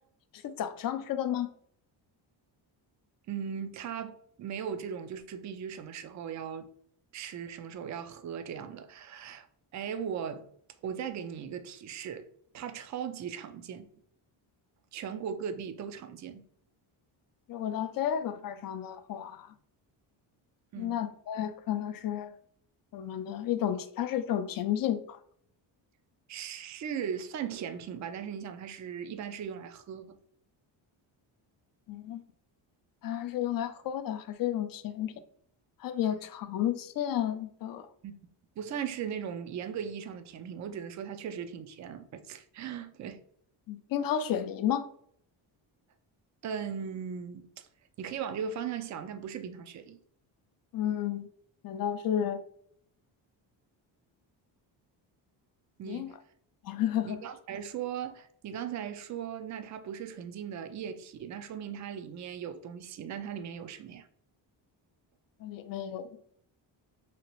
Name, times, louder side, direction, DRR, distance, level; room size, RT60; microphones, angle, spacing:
voice 1, 0.3-1.5 17.5-19.5 20.8-22.3 22.9-25.2 31.9-32.2 33.0-35.1 35.8-37.9 43.7-44.9 50.7-51.3 51.6-52.4 55.9-56.1 56.6-57.2 65.4-66.1, left 10 dB, 45° left, 0.5 m, -32 dB
voice 2, 3.3-6.7 7.1-9.5 9.7-10.5 10.8-12.3 12.5-13.9 14.9-16.4 20.7-21.0 26.3-30.1 38.0-38.1 38.6-43.2 46.4-47.7 48.0-50.0 55.8-56.1 57.1-64.1, right 8 dB, 40° right, 0.4 m, -38 dB
2.9 x 2.9 x 2.9 m
cardioid pair, 90°, 48 cm